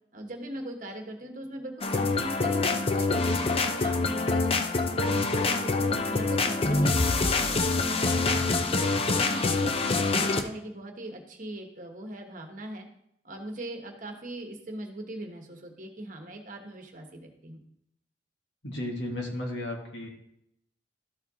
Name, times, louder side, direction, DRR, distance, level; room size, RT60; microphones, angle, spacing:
voice 1, 0.1-4.5 5.0-8.7 9.1-12.9 13.2-17.6, right 1 dB, 45° right, 3 dB, 1.2 m, -40 dB
sound 1, 1.8-10.4, left 3 dB, 30° left, 0.5 m, -25 dB
voice 2, 8.1-8.5 18.6-20.1, left 1 dB, 85° left, 0 dB, 2.0 m, -34 dB
13.0 x 4.5 x 3.7 m, 0.75 s
head